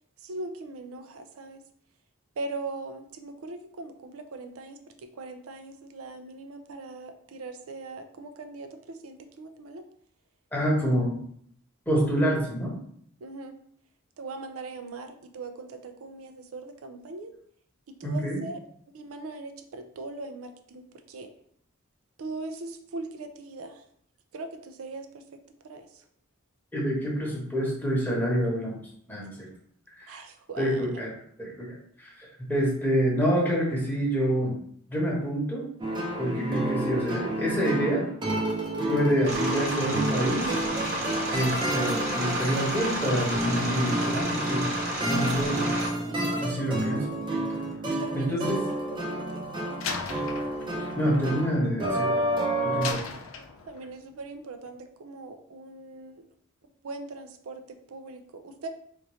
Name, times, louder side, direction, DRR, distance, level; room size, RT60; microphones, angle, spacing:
voice 1, 0.2-1.6 2.4-9.8 13.2-13.5 14.2-17.3 18.0-18.6 18.9-20.8 21.1-21.3 22.2-23.8 24.3-25.2 25.6-26.0 30.1-30.8 46.1-46.6 47.8-48.4 49.1-50.1 53.6-56.2 56.8-58.7, right 3 dB, 85° right, 7 dB, 0.4 m, -40 dB
voice 2, 10.5-11.2 11.9-12.8 18.0-18.4 26.7-28.8 29.1-29.5 30.0-30.2 30.6-31.1 31.4-34.5 34.9-35.6 36.2-38.1 38.9-40.7 41.3-44.7 45.1-45.6 46.4-47.0 48.1-48.6 51.0-52.1 52.6-53.1, equal, 10° left, -4 dB, 1.0 m, -27 dB
sound 1, 35.8-52.9, right 1 dB, 25° right, 0.6 m, -30 dB
sound 2, 39.3-45.9, right 1 dB, 50° right, 1.0 m, -31 dB
Slam, 49.8-52.2 52.8-54.0, left 5 dB, 70° left, 0.4 m, -38 dB
4.0 x 2.5 x 3.1 m, 0.65 s
head